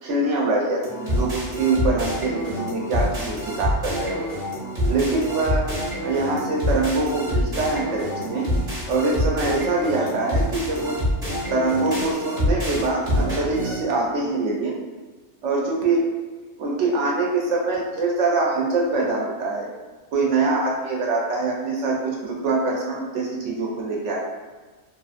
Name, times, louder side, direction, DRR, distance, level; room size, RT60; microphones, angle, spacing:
voice 1, 0.0-4.2 4.9-5.6 6.0-8.5 8.9-11.0 11.5-14.7 15.4-16.1 16.6-19.7 20.1-24.2, right 3 dB, 75° right, -2 dB, 0.9 m, -24 dB
sound 1, 0.8-13.8, equal, 40° right, 0.9 m, -26 dB
2.7 x 2.5 x 2.4 m, 1.3 s
omnidirectional pair, 1.3 m